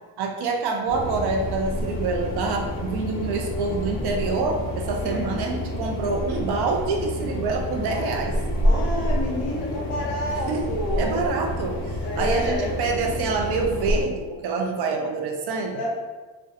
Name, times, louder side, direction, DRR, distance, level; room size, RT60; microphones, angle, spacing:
voice 1, 0.2-8.4 10.5-10.7 11.0-15.8, right 4 dB, 60° right, 2 dB, 0.6 m, -26 dB
sound 1, 0.9-14.0, equal, 25° left, 0.9 m, -28 dB
voice 2, 5.0-5.3 7.8-8.1 8.3-11.2 12.0-12.7 15.8-15.9, left 1 dB, 60° left, -3 dB, 1.0 m, -29 dB
2.6 x 2.2 x 3.9 m, 1.3 s
cardioid pair, 130°, 45 cm